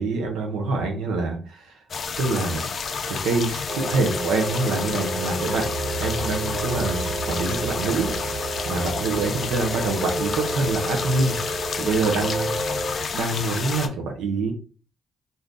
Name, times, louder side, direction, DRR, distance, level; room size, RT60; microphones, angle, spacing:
voice 1, 0.0-1.8 2.2-2.7 3.1-11.3 11.8-12.8 13.1-14.5, right 3 dB, 85° right, 2 dB, 0.7 m, -26 dB
sound 1, 1.9-13.9, left 5 dB, 50° left, 0.4 m, -30 dB
sound 2, 3.7-12.9, right 2 dB, 30° right, 0.8 m, -32 dB
sound 3, 4.9-13.1, right 4 dB, 60° right, 1.7 m, -37 dB
2.7 x 2.5 x 3.5 m, 0.38 s
cardioid pair, 90°, 0 cm